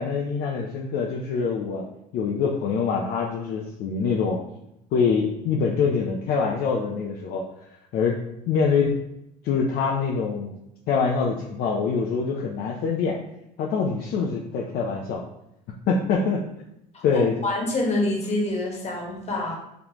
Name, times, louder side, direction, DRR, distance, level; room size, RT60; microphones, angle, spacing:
voice 1, 0.0-1.8 2.1-4.4 4.9-7.4 7.9-8.2 8.5-9.0 9.4-10.5 10.9-13.2 13.6-15.2 15.9-16.4 17.0-17.4, left 5 dB, 60° left, -1 dB, 0.6 m, -24 dB
voice 2, 16.9-19.6, left 2 dB, 40° left, -1 dB, 1.3 m, -26 dB
4.0 x 3.3 x 3.0 m, 0.82 s
supercardioid pair, 90°, 18 cm